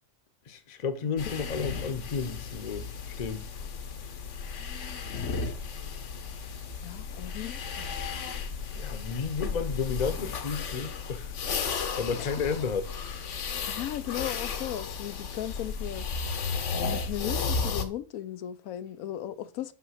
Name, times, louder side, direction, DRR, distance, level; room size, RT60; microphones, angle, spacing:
voice 1, 0.5-2.9 3.2-3.5 8.7-11.3 12.0-12.9, left 5 dB, 35° left, 0.8 m, -32 dB
sound 1, 1.2-17.8, left 5 dB, 60° left, 1.2 m, -34 dB
voice 2, 6.8-8.0 12.1-12.3 13.7-16.1 16.8-19.7, left 12 dB, 85° left, 1.1 m, -37 dB
6.1 x 5.8 x 5.7 m
omnidirectional pair, 1.4 m